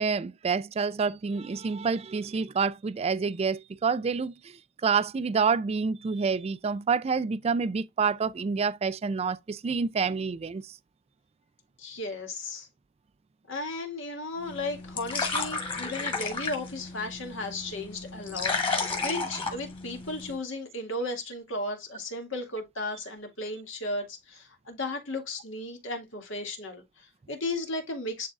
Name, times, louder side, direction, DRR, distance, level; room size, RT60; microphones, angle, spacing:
voice 1, 0.0-4.3 4.8-10.7, right 5 dB, 30° right, 0.3 m, -28 dB
voice 2, 11.8-12.7 13.5-28.3, left 2 dB, 65° left, 2.1 m, -35 dB
sound 1, 14.4-20.4, left 4 dB, 25° left, 2.5 m, -33 dB
11.0 x 3.7 x 2.4 m
head